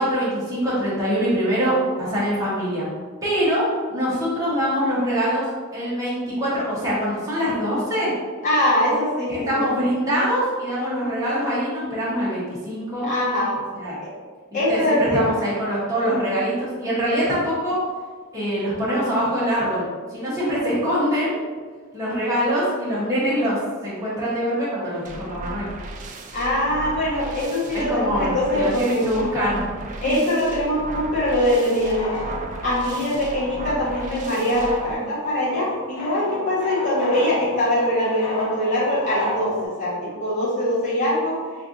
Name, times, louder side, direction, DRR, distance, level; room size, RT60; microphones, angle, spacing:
voice 1, 0.0-2.8 3.2-5.4 5.7-8.1 9.3-13.1 13.8-14.0 14.7-17.8 18.3-19.9 20.1-21.4 21.9-25.7 27.7-29.6 30.0-30.2, equal, 15° right, -9 dB, 1.0 m, -24 dB
voice 2, 8.4-9.6 13.0-13.5 14.0-14.1 14.5-15.2 26.3-29.1 30.0-32.4 32.6-41.4, left 1 dB, 35° left, -8 dB, 1.3 m, -22 dB
sound 1, 25.0-34.9, right 2 dB, 35° right, 0.3 m, -35 dB
sound 2, 31.7-39.6, equal, 65° left, 1.0 m, -34 dB
4.3 x 2.5 x 2.6 m, 1.5 s
head